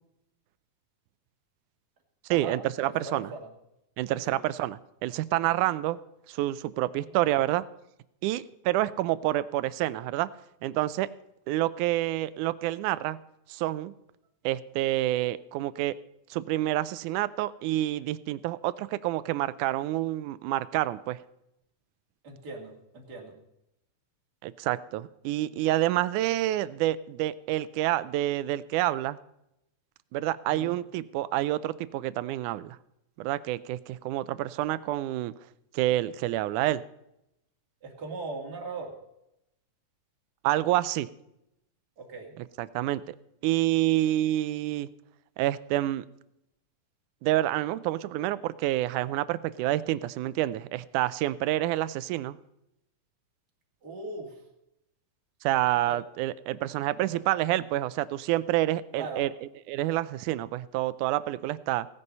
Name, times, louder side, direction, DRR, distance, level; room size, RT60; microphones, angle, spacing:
voice 1, 2.3-3.3 4.0-6.0 6.3-7.6 8.2-10.3 10.6-11.1 11.5-13.2 13.5-13.9 14.4-15.9 16.3-21.2 24.4-29.2 30.1-32.8 33.2-35.3 35.7-36.8 40.4-41.1 42.6-43.2 43.4-44.9 45.4-46.0 47.2-52.4 55.4-59.3 59.7-61.9, right 15 dB, 80° right, 16 dB, 2.1 m, -28 dB
voice 2, 2.9-3.5 4.1-4.4 7.0-7.1 22.2-23.4 30.5-30.8 37.8-38.9 42.0-42.3 53.8-54.4 55.9-56.0 57.0-57.2 59.0-59.3, right 3 dB, 35° right, 0 dB, 2.7 m, -39 dB
17.0 x 9.9 x 5.4 m, 0.83 s
omnidirectional pair, 3.6 m